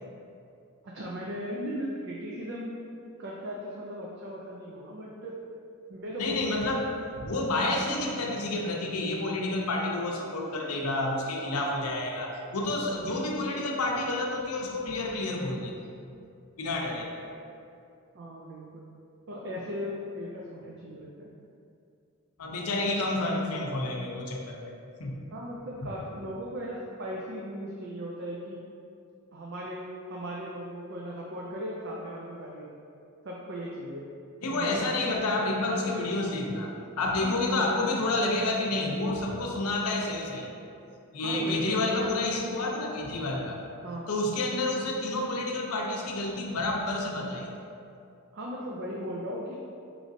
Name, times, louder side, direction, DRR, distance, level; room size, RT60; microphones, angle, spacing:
voice 1, 0.8-2.7 3.2-5.4 5.9-6.8 18.1-18.9 19.3-21.3 25.3-28.6 29.3-32.7 33.2-34.1 34.5-34.9 37.2-37.8 41.2-42.0 43.8-44.1 48.3-49.6, equal, 55° right, -4 dB, 0.4 m, -37 dB
voice 2, 6.2-6.8 7.2-15.7 16.6-17.1 22.4-24.7 25.0-25.2 34.4-40.5 41.1-43.6 44.1-47.5, left 2 dB, 90° left, 0 dB, 0.6 m, -29 dB
5.0 x 3.1 x 2.6 m, 2.6 s
head